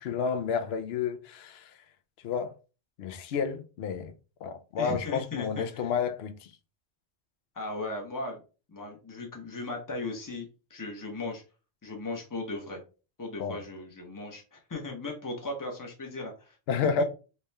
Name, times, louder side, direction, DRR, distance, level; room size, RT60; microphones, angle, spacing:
voice 1, 0.0-1.7 2.2-2.5 3.0-4.1 4.4-6.5 13.4-13.6 16.7-17.0, left 6 dB, 70° left, 0.8 m, -30 dB
voice 2, 4.8-5.9 7.5-8.4 8.7-11.4 11.8-12.8 13.2-16.6, left 2 dB, 20° left, 0.9 m, -37 dB
3.4 x 2.9 x 3.3 m
omnidirectional pair, 1.2 m